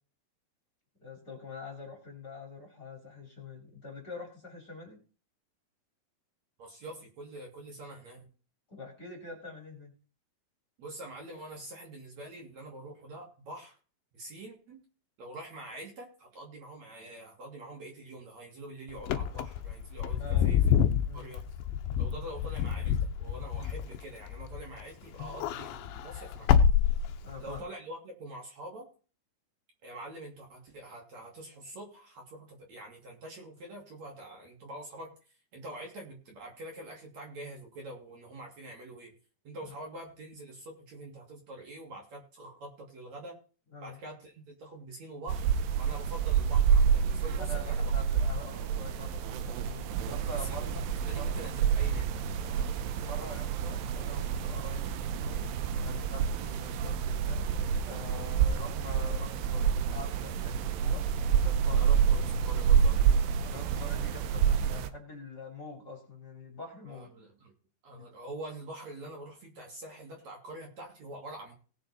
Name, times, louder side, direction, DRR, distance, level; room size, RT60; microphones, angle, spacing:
voice 1, 1.0-5.0 8.7-9.9 20.2-20.5 21.1-21.3 27.2-27.6 39.6-39.7 43.7-44.0 47.4-50.8 51.1-51.4 52.4-55.4 55.8-57.5 57.8-61.0 61.4-61.9 63.4-67.1 67.9-68.0, left 2 dB, 25° left, 0 dB, 3.2 m, -45 dB
voice 2, 6.6-8.3 10.8-13.8 14.1-14.8 15.2-20.8 21.1-21.4 22.0-26.6 27.4-28.9 29.8-35.1 35.5-39.1 39.4-43.4 43.8-45.5 45.8-47.9 50.3-50.8 51.0-52.2 61.7-63.3 66.9-67.5 67.8-71.5, right 1 dB, 45° right, 0 dB, 3.6 m, -45 dB
Wind / Car, 19.0-24.8 25.1-27.6, left 8 dB, 75° left, 2.4 m, -27 dB
sound 1, 45.3-64.9, right 7 dB, 75° right, 2.3 m, -28 dB
19.0 x 6.8 x 4.2 m, 0.38 s
omnidirectional pair, 4.6 m